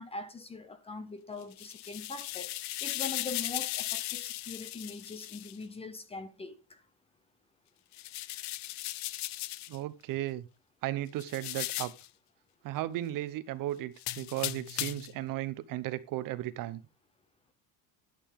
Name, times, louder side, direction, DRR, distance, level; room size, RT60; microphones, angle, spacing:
voice 1, 0.0-2.5 2.8-6.8, left 3 dB, 15° left, 0.8 m, -42 dB
sound 1, 1.4-5.6 7.9-9.8 11.2-12.1 14.0-15.2, left 16 dB, 45° left, 0.5 m, -37 dB
voice 2, 9.7-10.4 10.8-11.9 12.6-16.8, right 14 dB, 50° right, 0.9 m, -35 dB
11.0 x 10.5 x 3.6 m
cardioid pair, 180°, 42 cm